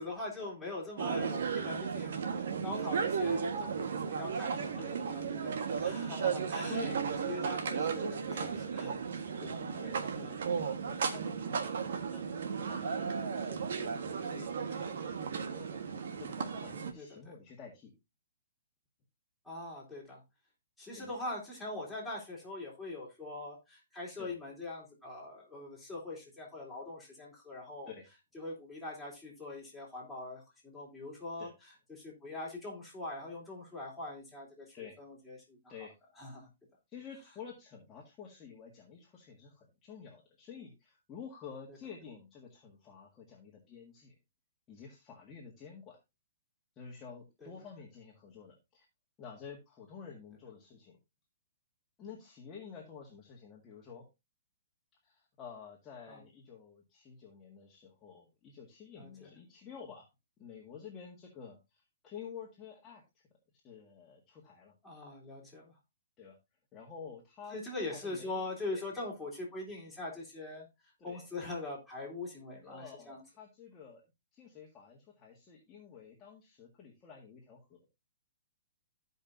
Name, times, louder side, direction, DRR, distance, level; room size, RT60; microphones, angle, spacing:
voice 1, 0.0-6.9 7.2-9.0 9.3-9.4 13.5-13.7 17.0-17.2 19.4-20.2 20.8-27.9 28.3-31.5 31.9-34.7 35.0-35.7 36.2-36.5 47.4-47.5 56.1-56.2 59.0-59.3 64.8-65.7 67.5-70.7 71.0-73.2, left 2 dB, ahead, -7 dB, 3.6 m, -42 dB
sound 1, 1.0-16.9, right 6 dB, 70° right, 1.4 m, -35 dB
voice 2, 4.5-5.1 5.5-6.1 6.7-7.8 8.3-8.6 9.4-17.9 20.9-21.2 24.2-24.3 27.9-28.1 31.4-31.5 34.7-35.0 35.7-35.9 36.9-44.1 44.7-46.0 46.7-48.9 49.2-51.0 52.0-54.0 55.0-60.1 60.4-63.2 63.6-64.7 66.2-66.4 66.7-67.6 67.9-68.4 68.7-68.9 71.0-71.3 72.6-74.0 74.3-77.8, left 6 dB, 20° left, -3 dB, 1.8 m, -50 dB
14.5 x 5.4 x 2.6 m, 0.24 s
hypercardioid pair, 155°, 0 cm